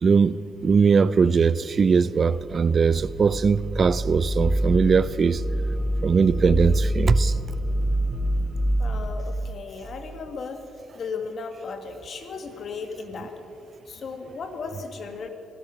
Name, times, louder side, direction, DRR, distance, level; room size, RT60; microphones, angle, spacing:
voice 1, 0.0-5.4 6.0-7.3, right 5 dB, 40° right, 0.4 m, -20 dB
sound 1, 2.4-9.0, right 1 dB, 5° right, 4.7 m, -26 dB
voice 2, 8.8-10.6 10.9-13.4 13.9-15.3, left 4 dB, 55° left, 1.6 m, -35 dB
15.0 x 13.0 x 6.1 m
cardioid pair, 90°, 0 cm